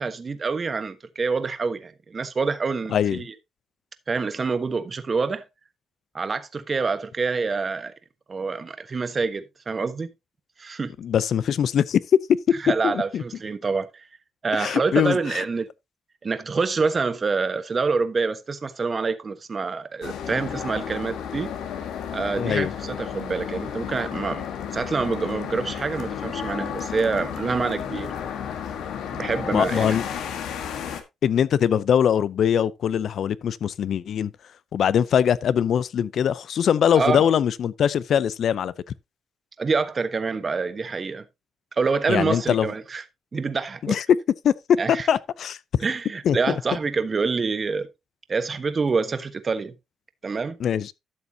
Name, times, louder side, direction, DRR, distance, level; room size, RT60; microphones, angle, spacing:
voice 1, 0.0-3.3 4.1-5.4 6.1-7.9 8.3-10.1 10.6-10.9 12.6-14.0 14.4-15.7 16.2-21.6 22.1-24.5 24.7-28.1 29.1-30.0 36.9-37.3 39.6-41.2 41.8-43.0 43.3-44.0 44.8-45.1 45.8-47.9 48.3-49.8 50.2-50.6, right 4 dB, 35° right, 1.2 m, -26 dB
voice 2, 2.9-3.2 11.0-12.0 12.8-13.2 14.5-15.4 22.4-22.7 29.5-30.0 31.2-34.3 34.7-38.7 42.1-42.7 43.8-44.2 44.4-44.5 44.9-45.6 46.2-46.5 50.6-50.9, left 8 dB, 65° left, 0.5 m, -22 dB
sound 1, 20.0-31.0, left 8 dB, 80° left, 1.5 m, -32 dB
12.5 x 7.0 x 2.8 m
cardioid pair, 90°, 0 cm